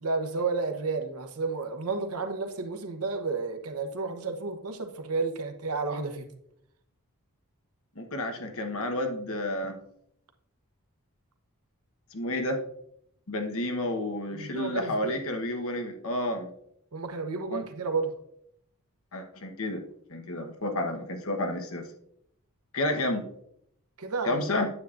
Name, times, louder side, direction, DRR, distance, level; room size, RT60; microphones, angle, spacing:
voice 1, 0.0-6.3 14.3-15.2 16.9-18.1 24.0-24.5, right 4 dB, 85° right, 5 dB, 1.1 m, -31 dB
voice 2, 8.0-9.8 12.1-12.6 13.3-16.5 17.5-17.6 19.1-19.8 20.1-21.8 22.7-23.3 24.2-24.7, left 1 dB, 65° left, 4 dB, 1.2 m, -30 dB
9.2 x 8.1 x 2.5 m, 0.72 s
head